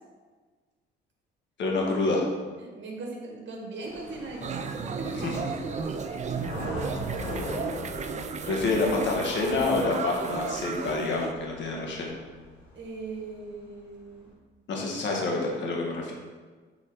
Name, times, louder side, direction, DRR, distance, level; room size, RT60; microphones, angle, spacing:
voice 1, 1.6-2.2 5.2-5.3 8.5-12.2 14.7-16.1, left 3 dB, 70° left, -1 dB, 1.4 m, -27 dB
voice 2, 2.6-4.6 5.0-5.4 5.8-6.1 12.7-14.3, right 3 dB, 65° right, 0 dB, 1.6 m, -39 dB
sound 1, 3.8-13.2 13.6-14.3, left 1 dB, 90° left, 1.4 m, -41 dB
sound 2, 4.4-11.3, right 5 dB, 35° right, 0.4 m, -34 dB
6.6 x 3.9 x 3.8 m, 1.4 s
cardioid pair, 90°, 20 cm